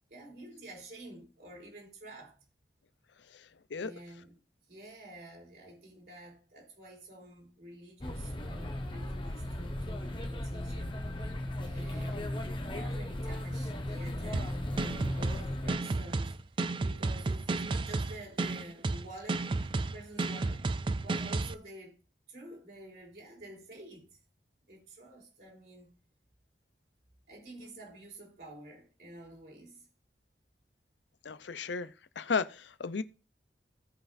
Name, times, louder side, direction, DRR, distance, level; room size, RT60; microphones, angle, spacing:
voice 1, 0.1-2.4 3.7-4.4 4.7-11.0 11.5-12.3 12.7-16.3 16.8-22.0 22.3-24.2 24.7-26.0 27.3-29.9, right 1 dB, 60° right, 3.8 m, -49 dB
sound 1, 8.0-15.7, left 1 dB, 25° left, 1.1 m, -36 dB
sound 2, 14.3-21.5, right 3 dB, 30° right, 0.3 m, -32 dB
voice 2, 31.2-31.9 32.2-33.0, left 5 dB, 90° left, 0.6 m, -33 dB
16.5 x 5.6 x 2.6 m
head